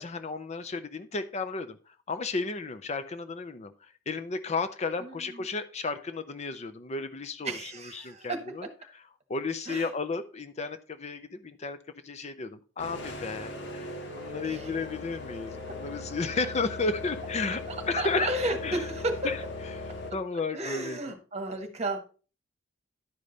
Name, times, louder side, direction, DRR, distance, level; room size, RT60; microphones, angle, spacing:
voice 1, 0.0-1.8 2.1-8.7 9.3-11.8 12.0-17.6 17.9-18.3 18.6-18.8 19.2-19.4 20.1-21.1, left 3 dB, 35° left, 10 dB, 0.5 m, -33 dB
voice 2, 5.0-5.4 7.4-8.3 9.7-9.9 14.4-14.7 17.7-19.1 20.5-22.0, right 2 dB, 35° right, 6 dB, 1.4 m, -33 dB
sound 1, 12.8-20.1, left 2 dB, 65° left, 1.5 m, -39 dB
11.0 x 5.1 x 4.0 m, 0.37 s
head